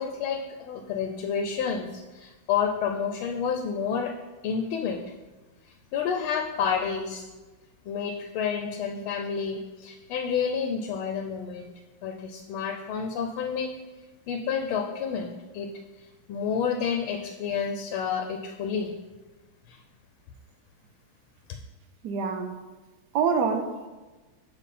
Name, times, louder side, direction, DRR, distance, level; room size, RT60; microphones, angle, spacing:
voice 1, 0.0-4.1 4.4-5.0 5.9-7.3 7.8-11.7 12.0-13.7 14.3-15.7 16.0-18.9 19.7-19.8, left 6 dB, 85° left, 4 dB, 1.5 m, -29 dB
voice 2, 22.0-22.5 23.1-23.9, right 5 dB, 65° right, 6 dB, 1.2 m, -26 dB
7.2 x 5.5 x 4.2 m, 1.2 s
omnidirectional pair, 2.2 m